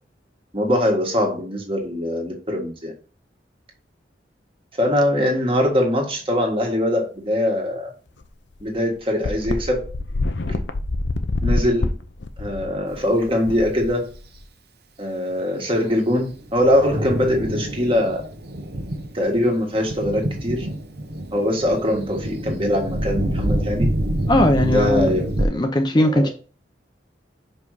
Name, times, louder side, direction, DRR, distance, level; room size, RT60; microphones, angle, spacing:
voice 1, 0.5-2.9 4.8-7.9 8.6-9.9 10.5-10.6 11.4-11.9 12.4-14.1 15.0-18.3 19.1-20.7 21.3-23.9 24.6-25.3 25.6-25.7 25.9-26.3, left 1 dB, 30° right, 2 dB, 1.7 m, -22 dB
sound 1, 8.2-8.3 8.6-8.7 9.2-14.4, left 2 dB, 70° left, 0.7 m, -26 dB
Thunder, 15.7-25.5, right 1 dB, 60° right, 1.1 m, -27 dB
voice 2, 24.3-26.3, left 1 dB, 25° left, 5 dB, 0.7 m, -19 dB
5.3 x 5.2 x 4.8 m, 0.37 s
head